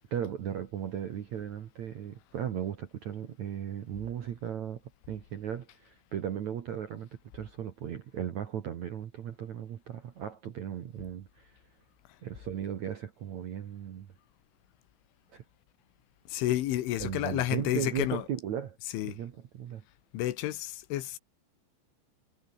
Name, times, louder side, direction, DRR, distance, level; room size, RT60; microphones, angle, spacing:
voice 1, 0.1-4.8 5.1-11.6 12.2-14.1 15.3-15.4 17.0-18.8 19.0-19.8, right 9 dB, 65° right, 1.9 m, -36 dB
voice 2, 16.3-18.3 18.8-19.2 20.1-21.2, left 14 dB, 85° left, 3.9 m, -31 dB
omnidirectional pair, 5.4 m